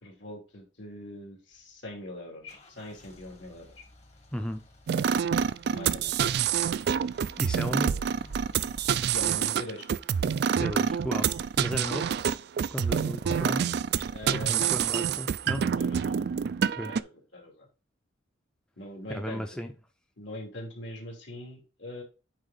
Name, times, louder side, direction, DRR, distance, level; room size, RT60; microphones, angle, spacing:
voice 1, 0.0-3.7 5.7-6.4 7.8-8.0 8.9-9.8 11.6-11.7 14.1-14.7 15.1-15.2 15.7-17.1 17.3-17.7 18.8-19.6 20.2-22.0, left 1 dB, 70° left, 2.8 m, -42 dB
Car / Engine starting / Idling, 1.5-9.3, left 1 dB, 35° left, 1.3 m, -53 dB
voice 2, 4.3-4.6 7.4-7.9 10.6-11.3 11.6-12.1 12.7-13.6 14.3-15.6 16.8-16.9 19.1-19.7, equal, 5° left, 0.6 m, -34 dB
sound 1, 4.9-17.0, right 7 dB, 55° right, 0.3 m, -27 dB
9.0 x 3.7 x 4.0 m
head